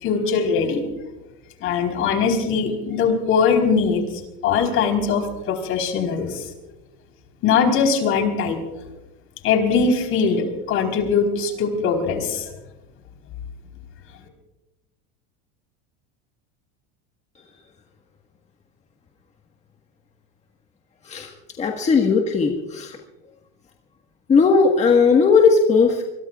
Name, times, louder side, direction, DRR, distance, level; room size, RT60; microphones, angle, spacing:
voice 1, 0.0-0.8 1.6-4.0 4.4-6.5 7.4-8.6 9.4-12.5, left 5 dB, 45° left, 4 dB, 4.1 m, -21 dB
voice 2, 21.6-23.0 24.3-26.0, left 5 dB, 25° left, 2 dB, 1.6 m, -17 dB
24.0 x 22.5 x 2.5 m, 1.0 s
supercardioid pair, 125°, 29 cm